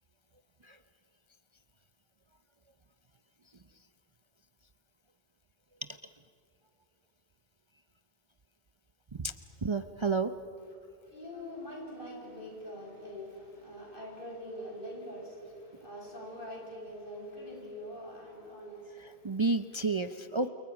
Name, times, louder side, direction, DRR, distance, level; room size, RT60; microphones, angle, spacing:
voice 1, 9.6-10.3 19.0-20.5, right 3 dB, 30° right, 9 dB, 0.7 m, -30 dB
voice 2, 11.1-19.3 20.0-20.1, equal, 55° left, -2 dB, 7.7 m, -44 dB
30.0 x 28.5 x 6.0 m, 2.9 s
omnidirectional pair, 1.1 m